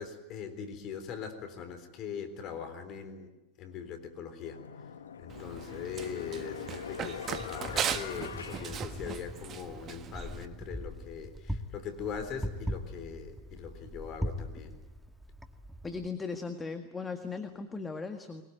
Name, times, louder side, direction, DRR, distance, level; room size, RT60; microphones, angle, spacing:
voice 1, 0.0-3.3 3.6-4.6 5.2-14.8, left 7 dB, 45° left, 9 dB, 3.7 m, -41 dB
sound 1, 3.7-3.8 4.4-9.6, left 8 dB, 80° left, 1.1 m, -43 dB
Run, 5.3-10.5, right 8 dB, 35° right, 1.5 m, -38 dB
Wind, 7.2-16.1, equal, ahead, 1.7 m, -41 dB
voice 2, 15.8-18.4, left 4 dB, 15° left, 7 dB, 1.8 m, -37 dB
22.5 x 21.5 x 9.2 m, 1.1 s
hypercardioid pair, 95°, 0 cm